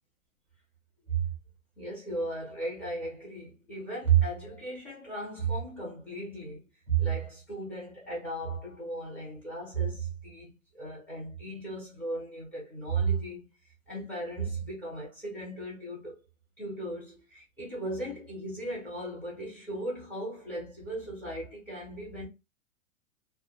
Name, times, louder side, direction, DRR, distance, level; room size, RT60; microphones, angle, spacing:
voice 1, 1.8-13.5 13.9-16.2 16.6-22.2, right 5 dB, 5° left, 0.4 m, -34 dB
2.1 x 2.1 x 2.8 m
hypercardioid pair, 130°, 42 cm